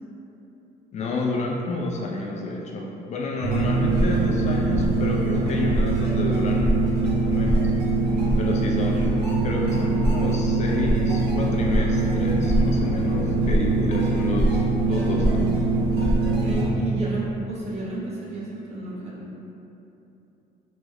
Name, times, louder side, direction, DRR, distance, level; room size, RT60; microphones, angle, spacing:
voice 1, 0.9-7.7 8.4-9.1 9.4-15.6, left 2 dB, 45° left, -1 dB, 0.4 m, -30 dB
sound 1, 3.4-16.7, right 2 dB, 75° right, 0.8 m, -22 dB
voice 2, 16.2-19.3, right 2 dB, 40° right, -6 dB, 0.8 m, -32 dB
3.5 x 2.1 x 3.4 m, 2.9 s
cardioid pair, 110°, 17 cm